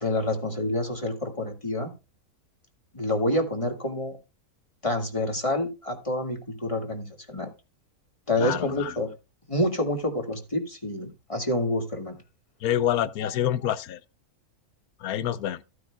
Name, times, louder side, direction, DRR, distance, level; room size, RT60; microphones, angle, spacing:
voice 1, 0.0-1.9 2.9-4.2 4.8-7.5 8.3-9.1 9.5-12.2, left 1 dB, 20° left, 2.0 m, -28 dB
voice 2, 8.4-8.9 12.6-14.0 15.0-15.6, left 11 dB, 85° left, 1.2 m, -27 dB
14.5 x 9.5 x 2.3 m
omnidirectional pair, 1.5 m